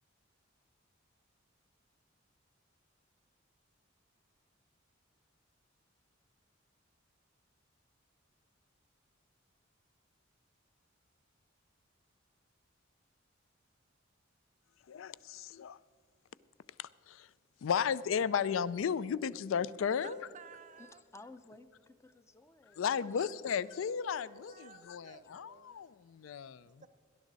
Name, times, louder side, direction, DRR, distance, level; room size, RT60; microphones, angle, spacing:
voice 1, 14.9-15.8 16.8-17.3 17.6-20.2 22.7-26.8, left 7 dB, 75° left, 0.4 m, -34 dB
voice 2, 20.0-21.0 23.5-23.7 24.1-25.8 26.6-26.9, right 6 dB, 40° right, 0.6 m, -55 dB
voice 3, 20.8-22.8, left 2 dB, 15° left, 0.5 m, -55 dB
18.0 x 11.5 x 4.0 m
head